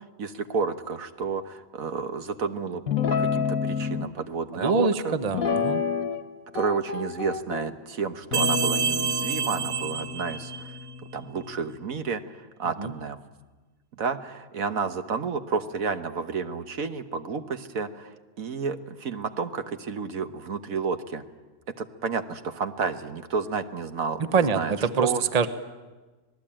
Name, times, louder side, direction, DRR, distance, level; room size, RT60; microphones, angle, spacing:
voice 1, 0.0-2.8 3.2-5.1 6.5-10.7 11.1-12.2 12.6-13.2 14.0-21.2 21.8-25.2, right 5 dB, 75° right, 8 dB, 1.6 m, -31 dB
Guitar, 2.9-4.1 5.3-6.3 6.6-7.7 8.3-11.8, left 6 dB, 80° left, 1.6 m, -29 dB
voice 2, 4.5-5.8 12.8-12.9 24.3-25.5, right 5 dB, 30° right, 10 dB, 1.0 m, -25 dB
sound 1, 8.3-10.9, right 7 dB, 55° right, 1.2 m, -28 dB
26.5 x 19.0 x 8.8 m, 1.3 s
omnidirectional pair, 1.5 m